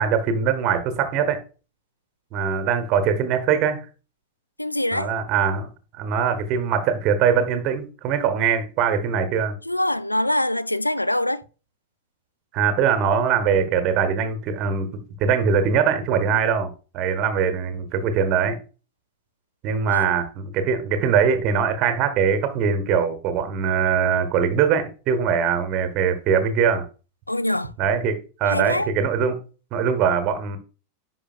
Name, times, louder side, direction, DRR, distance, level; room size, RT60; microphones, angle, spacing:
voice 1, 0.0-1.4 2.3-3.9 4.9-5.7 6.0-9.6 12.5-18.6 19.6-26.9 27.8-29.4 29.7-30.6, right 7 dB, 40° right, 1.2 m, -22 dB
voice 2, 4.6-5.1 9.7-11.4 19.9-20.2 27.3-27.7 28.5-28.9, left 1 dB, 85° left, 0.3 m, -24 dB
10.0 x 5.8 x 2.4 m
figure-of-eight pair, 90°, 0 cm